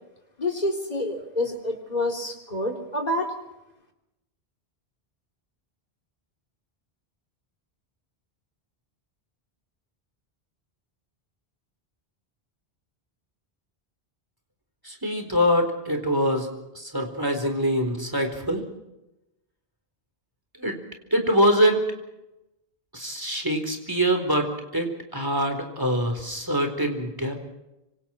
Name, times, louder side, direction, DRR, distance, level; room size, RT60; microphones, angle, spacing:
voice 1, 0.4-3.3, left 1 dB, 45° left, 2 dB, 3.9 m, -28 dB
voice 2, 14.8-16.5 16.7-18.6 20.6-20.8 21.1-21.8 22.9-27.5, equal, 20° right, 5 dB, 4.2 m, -24 dB
26.0 x 26.0 x 4.5 m, 0.92 s
omnidirectional pair, 1.0 m